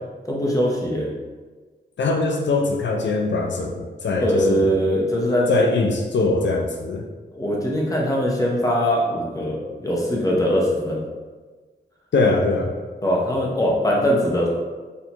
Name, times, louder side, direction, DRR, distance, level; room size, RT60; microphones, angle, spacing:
voice 1, 0.2-1.1 4.2-5.5 7.3-11.0 13.0-14.5, equal, 20° left, -2 dB, 0.7 m, -21 dB
voice 2, 2.0-4.8 5.5-7.0 12.1-12.7, left 3 dB, 75° left, 2 dB, 0.4 m, -22 dB
4.3 x 2.7 x 2.8 m, 1.4 s
wide cardioid pair, 125°, 19 cm